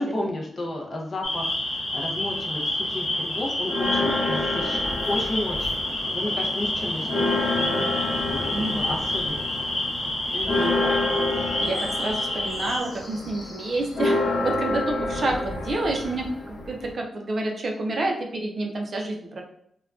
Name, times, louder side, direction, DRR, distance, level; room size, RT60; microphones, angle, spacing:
voice 1, 0.0-5.8 6.1-7.9 8.3-8.5 8.8-9.5 10.3-10.8, left 1 dB, 35° left, 0 dB, 0.5 m, -32 dB
sound 1, 1.2-12.8, left 1 dB, 90° left, 0.9 m, -28 dB
sound 2, 3.7-6.0 6.4-16.9, left 2 dB, 50° left, 0.9 m, -28 dB
voice 2, 8.5-8.9 10.3-11.0 11.4-19.4, right 2 dB, 40° right, 1 dB, 0.4 m, -29 dB
3.5 x 2.2 x 2.3 m, 0.69 s
wide cardioid pair, 160°, 0 cm